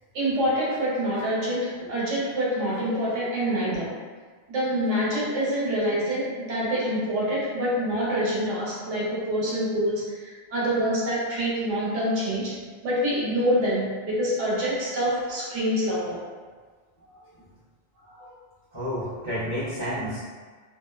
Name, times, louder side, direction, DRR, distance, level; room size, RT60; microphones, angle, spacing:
voice 1, 0.1-3.9 4.5-12.6 12.8-16.2 18.1-18.3 19.4-19.5, equal, 85° right, -7 dB, 1.2 m, -26 dB
voice 2, 18.7-20.2, equal, 30° left, -12 dB, 0.5 m, -30 dB
2.7 x 2.1 x 2.2 m, 1.5 s
omnidirectional pair, 1.2 m